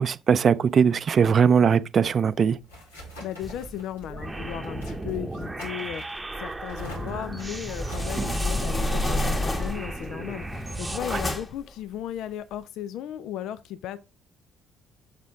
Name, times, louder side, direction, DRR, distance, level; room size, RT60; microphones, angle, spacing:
voice 1, 0.0-2.6 8.2-8.4 11.1-11.2, right 7 dB, 40° right, 0.5 m, -20 dB
sound 1, 2.3-11.4, equal, 80° left, 2.2 m, -46 dB
voice 2, 3.2-14.0, left 10 dB, 60° left, 0.4 m, -36 dB
sound 2, 3.4-11.0, right 2 dB, 15° right, 0.9 m, -36 dB
sound 3, 7.5-10.0 10.5-11.7, left 1 dB, 25° left, 1.6 m, -29 dB
7.1 x 4.2 x 3.6 m
figure-of-eight pair, 50°, 0 cm